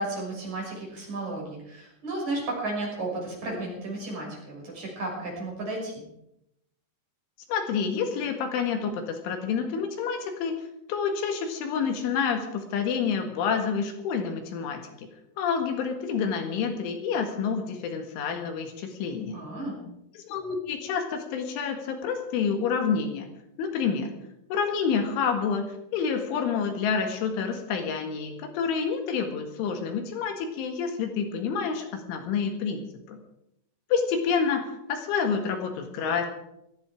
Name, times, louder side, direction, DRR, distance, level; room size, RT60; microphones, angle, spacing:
voice 1, 0.0-6.0 19.3-19.8, right 2 dB, 35° right, -2 dB, 7.1 m, -33 dB
voice 2, 7.5-10.6 10.9-15.1 15.4-19.4 20.2-23.3 23.6-24.2 24.5-25.6 25.9-33.2 33.9-36.3, left 6 dB, 75° left, 5 dB, 4.1 m, -28 dB
18.5 x 15.0 x 5.0 m, 0.82 s
omnidirectional pair, 5.7 m